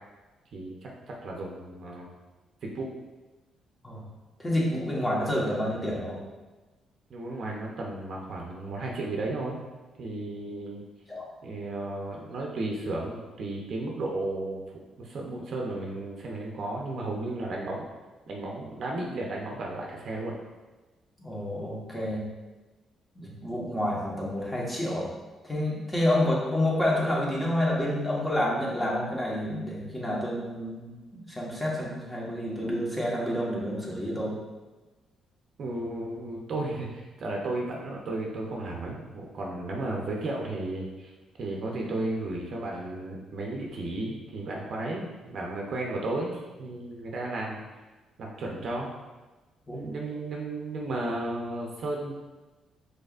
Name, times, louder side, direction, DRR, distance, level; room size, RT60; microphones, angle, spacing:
voice 1, 0.5-2.1 2.6-3.0 7.1-9.6 10.0-10.8 11.4-14.6 15.0-17.9 18.3-20.3 35.6-41.1 41.4-47.7 48.2-48.9 49.7-52.2, right 2 dB, 60° right, -1 dB, 0.8 m, -34 dB
voice 2, 4.4-6.2 11.1-11.3 21.2-22.3 23.1-25.1 25.4-34.4 49.7-49.8, left 1 dB, 15° left, -5 dB, 1.4 m, -29 dB
5.3 x 3.9 x 2.5 m, 1.2 s
cardioid pair, 90°, 0 cm